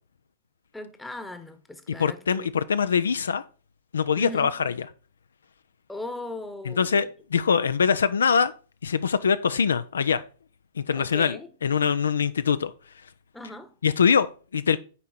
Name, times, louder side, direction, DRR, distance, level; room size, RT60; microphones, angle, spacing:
voice 1, 0.7-2.5 4.1-4.6 5.9-7.1 10.9-11.5 13.3-13.7, left 2 dB, 5° left, 0.9 m, -38 dB
voice 2, 1.9-3.4 3.9-4.7 6.7-8.5 8.8-10.2 10.8-12.7 13.8-14.8, left 6 dB, 75° left, 0.3 m, -23 dB
8.3 x 4.6 x 4.1 m
figure-of-eight pair, 105°, 0 cm